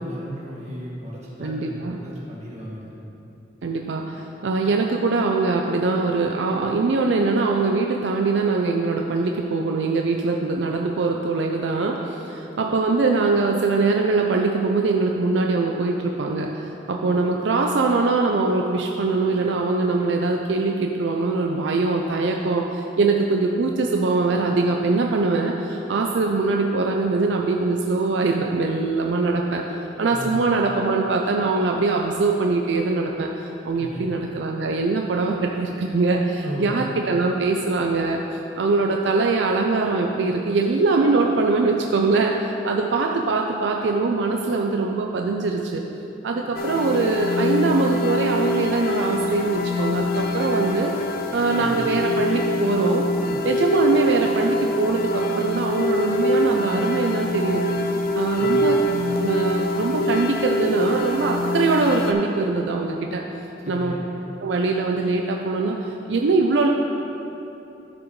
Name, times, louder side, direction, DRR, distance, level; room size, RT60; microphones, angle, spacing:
voice 1, 0.0-2.9 30.1-30.4 33.7-34.1 36.4-36.8 51.5-51.9 53.2-53.5 58.4-58.6 63.6-64.0, equal, 35° right, -6 dB, 1.7 m, -35 dB
voice 2, 1.4-2.0 3.6-29.6 30.0-38.2 38.6-45.8 46.2-50.9 51.3-53.0 53.4-57.6 58.1-58.7 59.2-63.2 63.7-63.9 64.4-66.7, right 3 dB, 75° right, 1 dB, 0.4 m, -22 dB
sound 1, 46.5-62.1, left 1 dB, 55° left, 0.5 m, -24 dB
13.0 x 5.0 x 3.1 m, 3.0 s
head